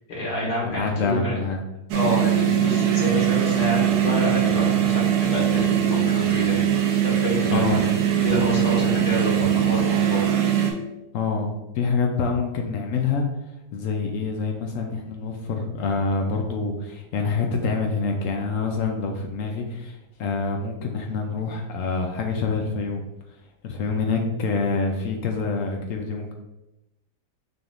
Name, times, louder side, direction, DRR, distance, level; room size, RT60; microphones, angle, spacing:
voice 1, 0.1-1.3 1.9-6.7 7.0-7.8 8.2-10.2, left 1 dB, 90° left, -5 dB, 2.2 m, -28 dB
voice 2, 0.6-1.6 6.0-6.2 7.5-7.9 11.1-13.3 13.7-23.0 23.6-26.3, left 4 dB, 75° left, 2 dB, 0.7 m, -26 dB
sound 1, 1.9-10.7, right 10 dB, 75° right, 1.2 m, -21 dB
5.9 x 3.5 x 2.4 m, 0.95 s
omnidirectional pair, 1.9 m